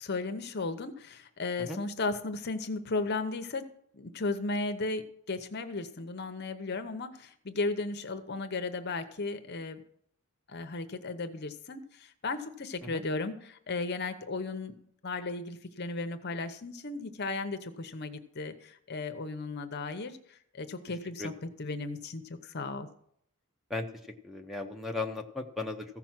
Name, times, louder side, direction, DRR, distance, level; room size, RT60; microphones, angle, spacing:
voice 1, 0.0-3.7 3.9-9.8 10.5-14.8 15.0-22.9, left 3 dB, 50° left, 9 dB, 0.8 m, -35 dB
voice 2, 24.2-25.9, left 3 dB, ahead, 4 dB, 0.7 m, -36 dB
14.5 x 6.0 x 6.0 m, 0.68 s
head